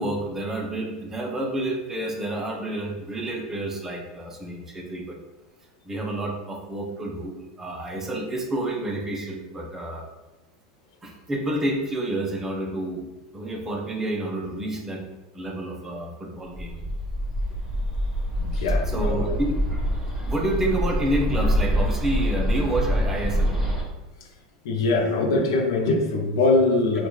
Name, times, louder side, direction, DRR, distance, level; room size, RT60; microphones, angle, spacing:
voice 1, 0.0-5.2 5.8-10.1 11.0-16.9 18.9-19.6 20.3-23.6, right 1 dB, 15° right, 1 dB, 0.5 m, -29 dB
Bird, 16.5-23.8, equal, ahead, 1.0 m, -25 dB
voice 2, 18.4-19.4 24.6-27.1, left 2 dB, 80° left, 3 dB, 0.6 m, -22 dB
3.8 x 2.3 x 3.0 m, 1.0 s
supercardioid pair, 130°, 2 cm